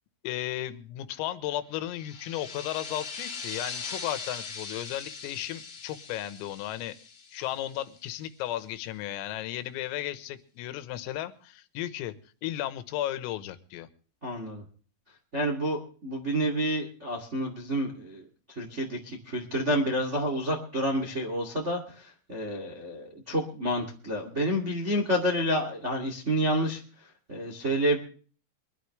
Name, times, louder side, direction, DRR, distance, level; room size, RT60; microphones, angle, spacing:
voice 1, 0.2-7.0 7.3-12.1 12.4-13.9, left 13 dB, 90° left, 12 dB, 3.8 m, -34 dB
sound 1, 1.9-8.2, left 5 dB, 35° left, 2.7 m, -40 dB
voice 2, 14.2-14.6 15.3-26.8 27.3-28.0, equal, 45° right, 1 dB, 0.8 m, -29 dB
23.5 x 13.0 x 3.2 m, 0.41 s
omnidirectional pair, 5.9 m